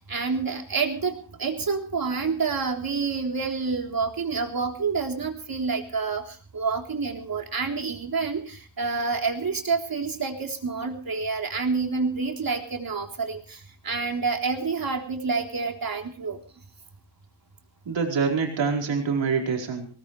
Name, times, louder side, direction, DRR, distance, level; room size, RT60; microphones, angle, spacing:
voice 1, 0.0-16.4, right 4 dB, 50° right, 2 dB, 3.8 m, -28 dB
voice 2, 17.8-19.9, right 5 dB, 80° right, 1 dB, 4.7 m, -25 dB
19.5 x 19.5 x 3.3 m, 0.39 s
cardioid pair, 75°, 44 cm